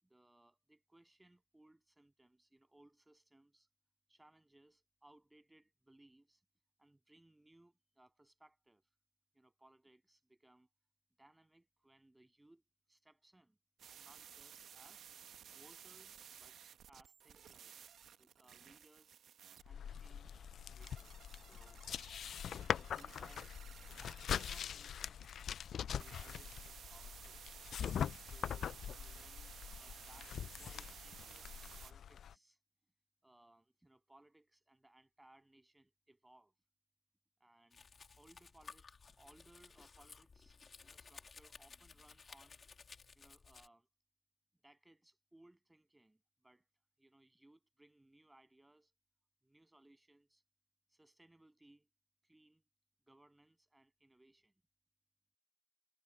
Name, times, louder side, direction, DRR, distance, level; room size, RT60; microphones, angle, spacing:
voice 1, 0.0-3.7 4.1-6.4 6.8-8.9 9.3-10.7 11.2-12.6 12.9-13.6 13.9-15.1 15.5-16.6 16.9-17.8 18.2-19.2 19.6-21.8 22.6-25.3 25.7-27.5 28.2-32.6 33.2-36.5 37.4-37.8 38.2-42.6 43.1-43.9 44.6-46.7 47.0-48.9 49.4-50.4 50.9-51.9 52.2-52.6 53.1-54.5, right 1 dB, 10° right, 7.9 m, -66 dB
sound 1, 13.8-31.9, right 9 dB, 65° right, 1.1 m, -56 dB
sound 2, 19.6-32.3, left 9 dB, 60° left, 0.3 m, -43 dB
Domestic sounds home sounds, 37.7-43.7, left 5 dB, 40° left, 3.0 m, -57 dB
cardioid pair, 90°, 0 cm